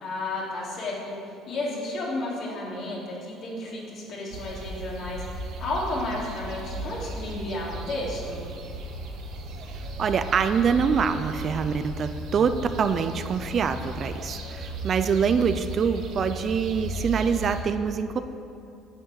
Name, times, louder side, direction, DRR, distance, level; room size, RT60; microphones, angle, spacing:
voice 1, 0.0-1.2 1.5-8.4, left 2 dB, 55° left, -5 dB, 3.3 m, -32 dB
sound 1, 4.3-17.6, right 1 dB, 65° right, 1.6 m, -36 dB
voice 2, 10.0-18.2, right 6 dB, 35° right, 10 dB, 0.5 m, -25 dB
9.6 x 8.0 x 7.6 m, 2.6 s
cardioid pair, 140°, 0 cm